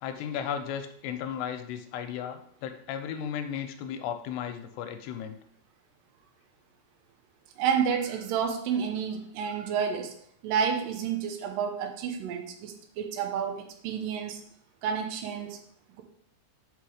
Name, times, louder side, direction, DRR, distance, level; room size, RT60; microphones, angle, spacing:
voice 1, 0.0-5.4, left 8 dB, 80° left, 6 dB, 2.7 m, -35 dB
voice 2, 7.6-10.1 10.4-14.4 14.8-15.6, right 7 dB, 80° right, 5 dB, 2.0 m, -30 dB
6.6 x 6.1 x 5.0 m, 0.68 s
omnidirectional pair, 5.1 m